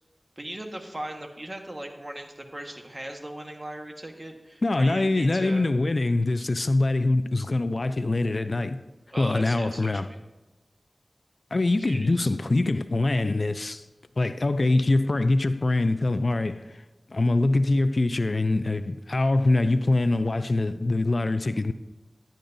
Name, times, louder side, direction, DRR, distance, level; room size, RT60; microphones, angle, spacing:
voice 1, 0.4-5.7 9.1-10.2 11.9-12.3, right 1 dB, 35° right, 1.4 m, -38 dB
voice 2, 4.6-8.8 9.2-10.1 11.5-13.8 14.2-16.8 17.1-21.7, left 2 dB, 60° left, 0.4 m, -24 dB
10.5 x 10.0 x 2.6 m
cardioid pair, 40°, 0 cm